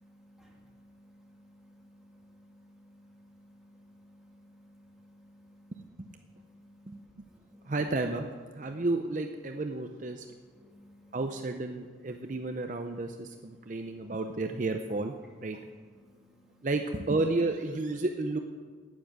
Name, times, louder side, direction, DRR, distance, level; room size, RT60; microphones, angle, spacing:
voice 1, 0.3-0.9 1.2-1.3 1.9-5.7 6.3-7.0 7.3-7.7 10.6-11.1 16.0-16.1, equal, ahead, -2 dB, 1.9 m, -58 dB
voice 2, 7.7-8.3 8.5-10.3 11.1-15.1 15.4-15.6 16.6-18.4, right 2 dB, 45° right, 5 dB, 0.5 m, -32 dB
9.8 x 9.5 x 7.5 m, 1.5 s
head